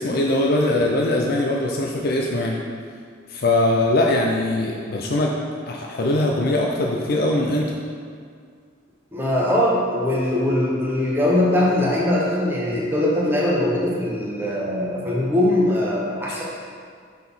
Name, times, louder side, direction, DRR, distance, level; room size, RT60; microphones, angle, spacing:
voice 1, 0.0-2.6 3.3-7.8, left 1 dB, 50° left, -1 dB, 0.5 m, -21 dB
voice 2, 9.1-16.4, left 1 dB, 10° right, -5 dB, 1.0 m, -21 dB
6.4 x 4.1 x 5.4 m, 2.1 s
head